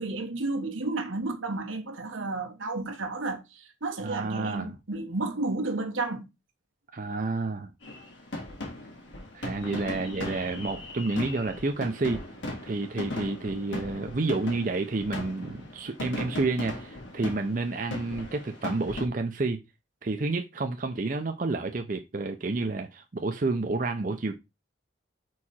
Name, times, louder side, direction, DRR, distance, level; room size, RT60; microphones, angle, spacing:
voice 1, 0.0-6.3 9.9-10.2, right 2 dB, 90° right, 1.4 m, -32 dB
voice 2, 4.0-4.7 6.9-7.7 9.3-12.2 12.6-19.6 20.0-24.4, right 3 dB, 40° right, 0.5 m, -30 dB
sound 1, 7.8-19.1, left 1 dB, 75° left, 1.9 m, -38 dB
4.8 x 4.7 x 4.2 m
head